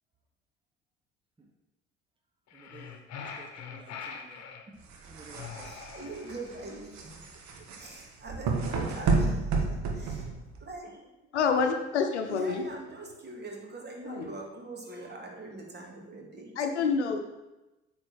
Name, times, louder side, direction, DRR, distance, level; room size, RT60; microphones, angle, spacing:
sound 1, 2.5-4.7 5.3-6.6, left 6 dB, 50° left, 1.1 m, -43 dB
voice 1, 2.5-4.5 5.0-5.9, right 3 dB, 15° right, 1 dB, 1.2 m, -53 dB
sound 2, 4.8-10.7, right 4 dB, 55° right, 1.4 m, -31 dB
voice 2, 5.6-10.3 10.6-11.1 12.3-16.9, right 2 dB, 30° right, 1 dB, 2.2 m, -43 dB
voice 3, 11.3-12.6 14.1-14.2 16.6-17.2, left 5 dB, 85° left, 5 dB, 0.8 m, -27 dB
8.8 x 4.1 x 6.4 m, 1.0 s
figure-of-eight pair, 55°, 33 cm